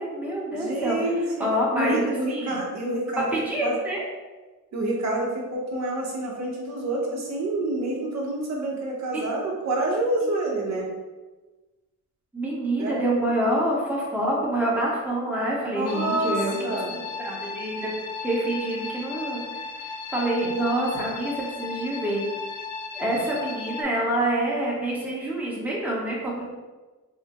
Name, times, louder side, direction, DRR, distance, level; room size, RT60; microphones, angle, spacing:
voice 1, 0.0-1.0 1.4-2.6 3.2-4.0 9.1-9.2 10.2-10.3 12.3-17.9 18.2-19.4 19.8-22.2 22.9-26.4, right 1 dB, 5° right, -5 dB, 0.9 m, -27 dB
voice 2, 0.5-1.5 1.7-3.3 3.6-3.8 4.7-10.9 12.8-13.0 15.7-16.9, right 2 dB, 55° right, -2 dB, 1.0 m, -27 dB
sound 1, 15.9-23.8, left 4 dB, 60° left, 0.4 m, -36 dB
5.9 x 2.1 x 2.9 m, 1.2 s
wide cardioid pair, 155°, 32 cm